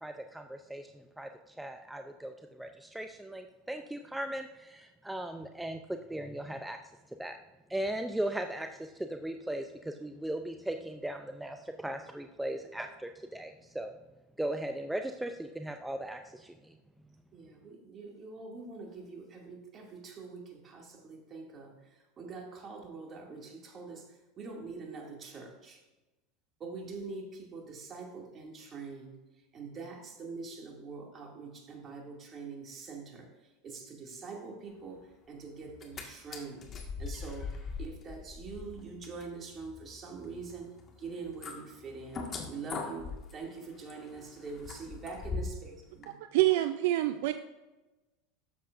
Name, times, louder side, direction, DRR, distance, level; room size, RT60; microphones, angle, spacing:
voice 1, 0.0-6.8 7.2-7.4 7.7-13.9 14.4-16.8, right 1 dB, 5° right, 6 dB, 0.5 m, -38 dB
voice 2, 17.3-25.8 26.6-29.2 29.5-46.1, right 4 dB, 35° right, 1 dB, 2.3 m, -44 dB
sound 1, 35.6-36.0 36.3-45.7 46.0-46.1, left 4 dB, 35° left, 1.7 m, -42 dB
voice 3, 46.3-47.3, right 16 dB, 70° right, 10 dB, 0.4 m, -26 dB
12.0 x 7.6 x 2.5 m, 1.1 s
hypercardioid pair, 90°, 0 cm